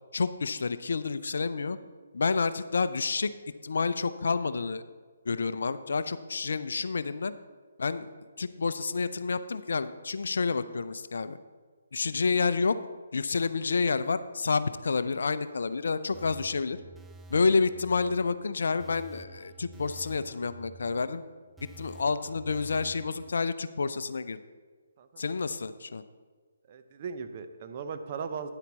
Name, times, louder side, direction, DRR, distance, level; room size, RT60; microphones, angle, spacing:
voice 1, 0.1-1.8 2.1-3.3 3.6-4.8 5.3-7.3 7.8-8.1 8.4-11.4 11.9-12.8 13.1-16.8 17.3-21.2 21.8-24.4 25.2-26.0, left 4 dB, 65° left, 13 dB, 0.5 m, -29 dB
sound 1, 16.1-23.3, right 4 dB, 5° right, 0.4 m, -51 dB
voice 2, 26.7-28.5, right 6 dB, 40° right, 8 dB, 0.7 m, -38 dB
9.8 x 8.4 x 4.0 m, 1.5 s
figure-of-eight pair, 140°, 0 cm